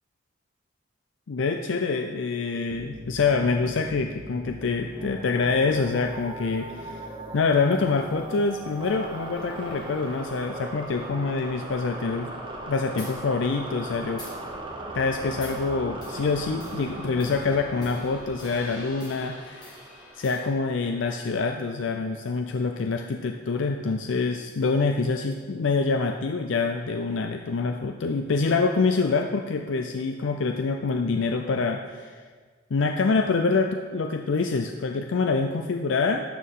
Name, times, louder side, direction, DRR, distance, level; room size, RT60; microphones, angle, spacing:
voice 1, 1.3-7.0 7.3-12.3 12.7-14.3 14.9-19.7 20.1-32.1 32.7-36.2, left 4 dB, 75° left, 4 dB, 0.4 m, -26 dB
sound 1, 2.7-21.2, right 1 dB, 25° right, 0.9 m, -39 dB
sound 2, 13.0-13.2 14.2-14.4 15.4-15.6 16.0-20.4, left 2 dB, 20° left, 1.9 m, -46 dB
12.0 x 6.4 x 3.7 m, 1.5 s
head